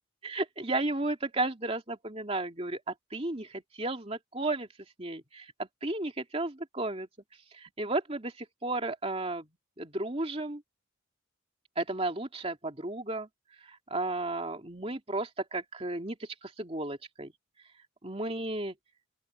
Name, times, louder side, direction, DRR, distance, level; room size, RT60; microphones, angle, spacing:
voice 1, 0.2-4.7 5.0-7.1 7.6-9.5 9.8-10.6 11.8-13.3 13.9-17.3 18.0-18.8, right 2 dB, 30° right, 2.6 m, -33 dB
open air
head